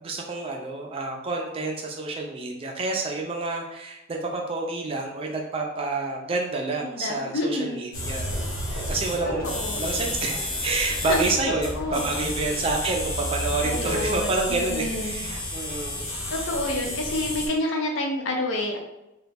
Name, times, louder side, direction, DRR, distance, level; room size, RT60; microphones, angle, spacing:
voice 1, 0.0-8.3 8.7-9.5 9.7-16.1, right 3 dB, 25° right, 0 dB, 0.3 m, -29 dB
voice 2, 6.8-7.8 9.4-9.8 11.0-11.3 11.8-12.0 13.6-15.1 16.3-18.8, left 2 dB, 65° left, 1 dB, 0.5 m, -28 dB
sound 1, 7.9-17.5, left 1 dB, 85° left, 0.9 m, -31 dB
2.2 x 2.0 x 3.3 m, 0.91 s
head